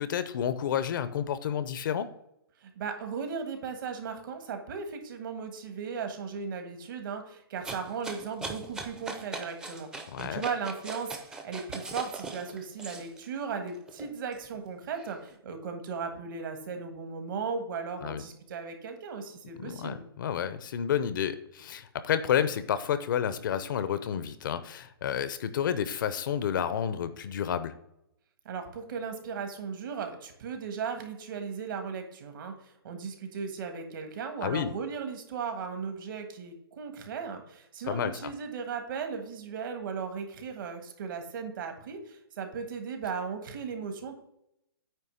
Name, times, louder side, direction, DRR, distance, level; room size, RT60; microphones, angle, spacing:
voice 1, 0.0-2.1 10.1-10.4 18.0-18.2 19.5-27.7 34.4-34.7 37.9-38.3, left 9 dB, 55° left, 13 dB, 0.7 m, -30 dB
voice 2, 2.6-20.1 28.5-44.1, right 6 dB, 55° right, 5 dB, 1.6 m, -37 dB
sound 1, 7.6-13.3 13.7-15.2, right 3 dB, 5° right, 0.6 m, -40 dB
9.1 x 3.2 x 6.4 m, 0.79 s
hypercardioid pair, 150°, 13 cm